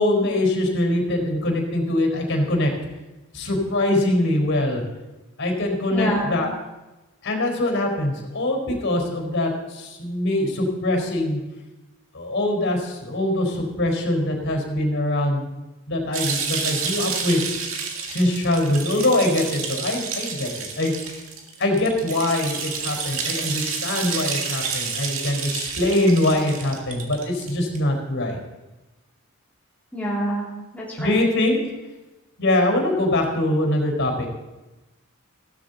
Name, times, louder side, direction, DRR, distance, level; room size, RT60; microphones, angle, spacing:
voice 1, 0.0-2.7 3.3-4.8 5.4-6.5 7.2-11.4 12.1-15.5 15.9-17.4 18.1-20.5 20.8-20.9 21.6-28.4 31.0-31.6 32.4-34.3, left 1 dB, 60° left, 2 dB, 4.3 m, -23 dB
voice 2, 5.9-6.4 29.9-31.2, equal, 5° left, -7 dB, 2.8 m, -27 dB
sound 1, 16.1-27.8, right 5 dB, 65° right, 2.1 m, -29 dB
16.0 x 13.0 x 4.1 m, 1.1 s
head